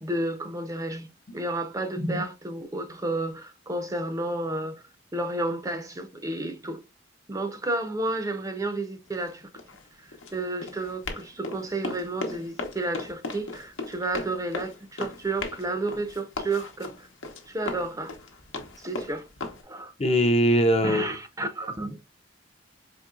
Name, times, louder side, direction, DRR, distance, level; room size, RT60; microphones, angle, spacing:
voice 1, 0.0-1.1 1.3-4.8 5.1-6.8 7.3-9.5 10.0-17.1 17.5-18.1 18.8-19.3 19.6-19.9 20.8-22.0, right 2 dB, 20° right, 0.5 m, -31 dB
Run, 9.1-19.6, left 3 dB, 85° left, 0.9 m, -37 dB
voice 2, 20.0-21.1, equal, 30° left, 0.5 m, -21 dB
4.3 x 2.9 x 2.4 m
head